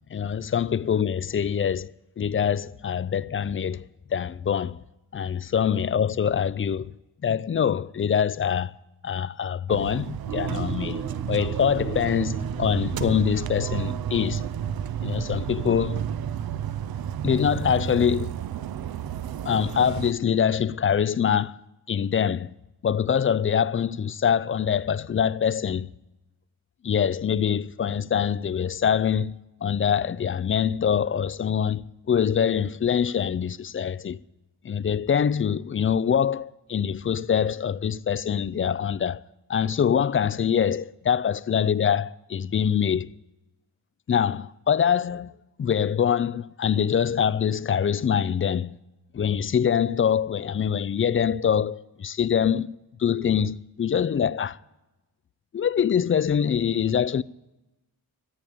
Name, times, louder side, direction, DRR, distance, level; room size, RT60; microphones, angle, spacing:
voice 1, 0.1-4.8 5.1-6.9 7.2-8.7 9.0-11.0 11.3-14.4 15.0-16.1 17.2-18.3 19.5-21.6 21.9-22.5 22.8-25.9 26.8-34.2 34.6-39.2 39.5-43.1 44.1-45.3 45.6-48.8 49.1-52.7 53.0-54.6 55.5-57.2, left 8 dB, 35° left, 0.4 m, -24 dB
sound 1, 9.7-20.1, right 10 dB, 65° right, 0.5 m, -31 dB
sound 2, 10.3-16.8, right 5 dB, 45° right, 1.0 m, -38 dB
14.0 x 8.7 x 8.4 m
wide cardioid pair, 95°, 40 cm